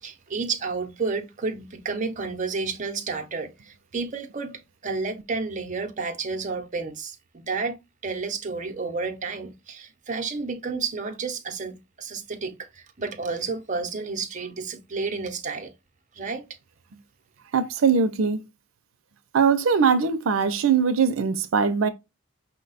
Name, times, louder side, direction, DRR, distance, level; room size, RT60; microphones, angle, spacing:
voice 1, 0.0-15.7 16.1-16.4, right 4 dB, 40° right, 0.7 m, -31 dB
voice 2, 17.5-18.4 19.3-21.9, right 6 dB, 85° right, 0.5 m, -21 dB
5.5 x 2.2 x 4.0 m
head